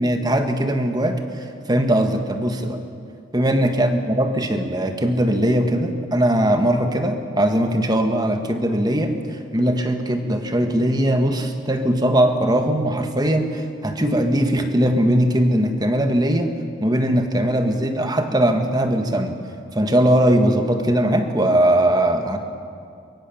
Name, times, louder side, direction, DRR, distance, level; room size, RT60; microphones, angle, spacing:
voice 1, 0.0-2.8 3.3-16.5 16.8-19.4 19.7-22.4, right 1 dB, 20° right, 6 dB, 1.6 m, -20 dB
23.5 x 22.5 x 7.3 m, 2.4 s
head